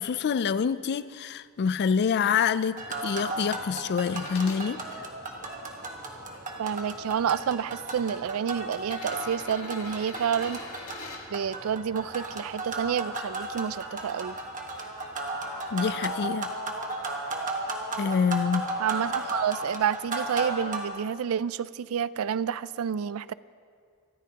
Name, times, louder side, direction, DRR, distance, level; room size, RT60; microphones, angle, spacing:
voice 1, 0.0-4.8 15.7-16.5 18.0-18.7, left 6 dB, 50° left, 0.3 m, -26 dB
sound 1, 2.8-20.8, right 2 dB, 35° right, 1.4 m, -35 dB
sound 2, 4.0-4.6 5.4-6.4 7.4-7.5 8.8-11.2 13.1-13.2, left 3 dB, 75° left, 2.0 m, -43 dB
voice 2, 6.6-10.6 11.3-14.4 18.8-23.3, right 8 dB, 70° right, 0.3 m, -29 dB
24.5 x 13.5 x 2.9 m
head